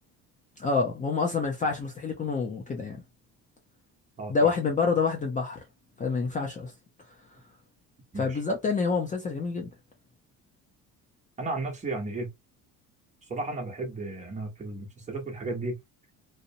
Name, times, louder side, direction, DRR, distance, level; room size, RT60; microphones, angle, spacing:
voice 1, 0.6-3.0 4.3-5.6 6.0-6.7 8.2-9.7, left 4 dB, 20° left, 0.5 m, -27 dB
voice 2, 4.2-4.5 8.1-8.4 11.4-12.3 13.2-15.8, right 2 dB, 20° right, 0.9 m, -34 dB
2.6 x 2.0 x 2.7 m
cardioid pair, 130°, 35 cm